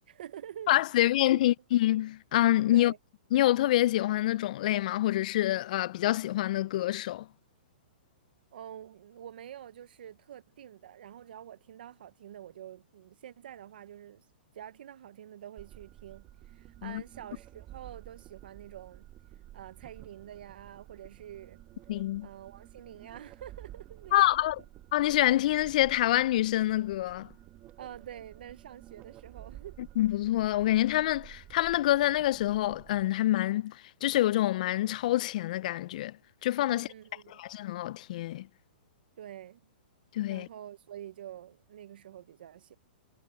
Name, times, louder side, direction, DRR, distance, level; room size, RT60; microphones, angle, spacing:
voice 1, 0.0-1.5 2.7-3.0 8.5-14.3 14.5-19.1 19.5-21.6 22.2-24.5 27.8-29.8 36.7-37.4 39.2-39.6 40.3-42.8, right 10 dB, 70° right, 0.6 m, -47 dB
voice 2, 0.7-2.9 3.3-7.3 16.8-17.0 21.9-22.3 24.1-24.6 24.9-27.3 30.0-36.9 37.3-38.5 40.1-40.5, left 14 dB, 50° left, 0.3 m, -26 dB
sound 1, 15.6-33.0, right 14 dB, 25° right, 1.7 m, -52 dB
hypercardioid pair, 150°, 5 cm